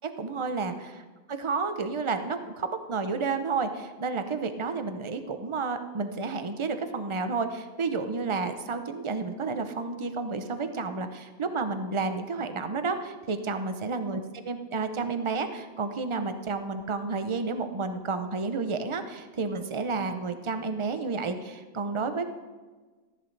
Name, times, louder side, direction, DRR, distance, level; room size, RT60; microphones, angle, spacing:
voice 1, 0.0-1.0 1.3-14.2 14.5-22.3, right 4 dB, 40° right, 8 dB, 0.4 m, -31 dB
13.5 x 11.0 x 3.3 m, 1.3 s
omnidirectional pair, 1.6 m